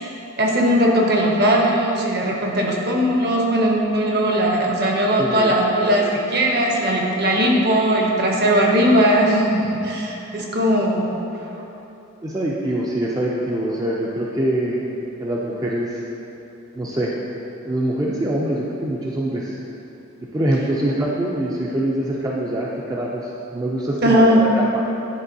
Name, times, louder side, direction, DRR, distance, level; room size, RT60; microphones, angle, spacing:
voice 1, 0.4-11.2 24.0-24.5, equal, 50° right, -1 dB, 0.8 m, -18 dB
voice 2, 5.2-5.5 12.2-14.9 15.2-16.0 16.7-17.1 17.6-19.6 20.3-24.8, right 1 dB, 15° right, -4 dB, 0.4 m, -24 dB
10.5 x 3.7 x 2.7 m, 3.0 s
head